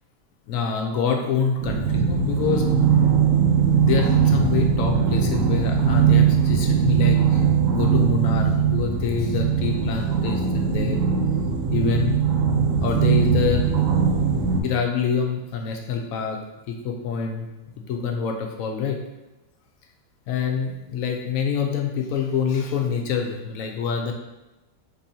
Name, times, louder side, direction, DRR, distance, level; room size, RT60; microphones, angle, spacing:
voice 1, 0.5-2.7 3.8-7.4 7.7-11.0 11.7-12.2 12.8-13.7 14.6-16.4 16.7-17.5 17.9-19.0 20.3-24.1, left 6 dB, 70° left, 3 dB, 0.8 m, -26 dB
sound 1, 1.6-14.6, right 7 dB, 65° right, 0.8 m, -20 dB
4.5 x 3.0 x 2.7 m, 1.0 s
omnidirectional pair, 1.8 m